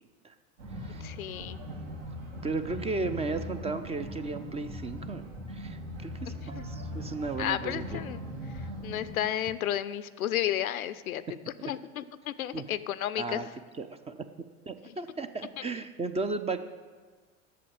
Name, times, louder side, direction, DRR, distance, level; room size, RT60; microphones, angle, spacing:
sound 1, 0.6-9.3, equal, 65° right, 2.3 m, -40 dB
voice 1, 1.0-1.6 6.5-6.6 7.4-8.2 8.8-11.2 11.6-13.4 14.8-15.0, left 11 dB, 80° left, 15 dB, 0.6 m, -32 dB
voice 2, 2.4-8.0 12.5-12.6 13.2-13.5 13.8-14.2 14.7-16.6, right 3 dB, 15° right, 10 dB, 0.5 m, -35 dB
8.5 x 7.0 x 8.7 m, 1.5 s
hypercardioid pair, 85°, 42 cm